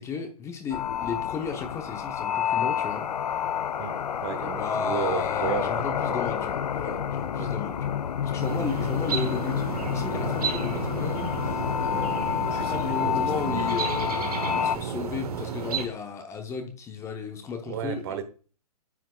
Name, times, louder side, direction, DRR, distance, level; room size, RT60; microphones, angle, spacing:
voice 1, 0.0-3.1 4.4-8.0 8.2-18.0, left 5 dB, 15° left, 0.8 m, -35 dB
sound 1, 0.7-14.8, left 9 dB, 75° left, 0.5 m, -29 dB
voice 2, 3.8-6.5 7.4-7.5 12.5-13.8 17.7-18.2, right 8 dB, 40° right, 1.0 m, -34 dB
sound 2, 8.4-15.9, right 6 dB, 70° right, 1.2 m, -32 dB
9.3 x 5.8 x 2.3 m
hypercardioid pair, 135°, 20 cm